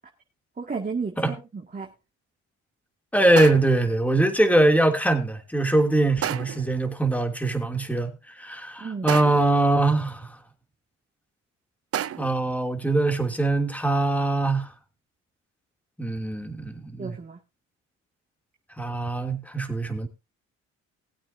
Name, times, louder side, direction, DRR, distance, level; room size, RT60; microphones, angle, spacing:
voice 1, 0.6-1.9 8.8-9.2 17.0-17.4, right 5 dB, 30° right, 2.3 m, -33 dB
sound 1, 1.1-1.2 3.4-3.9 6.2-6.8 9.1-9.6 11.9-12.5, right 10 dB, 50° right, 0.6 m, -31 dB
voice 2, 3.1-10.4 12.2-14.7 16.0-17.1 18.8-20.1, right 2 dB, 5° left, 3.1 m, -22 dB
20.5 x 8.7 x 2.8 m
cardioid pair, 90°, 30 cm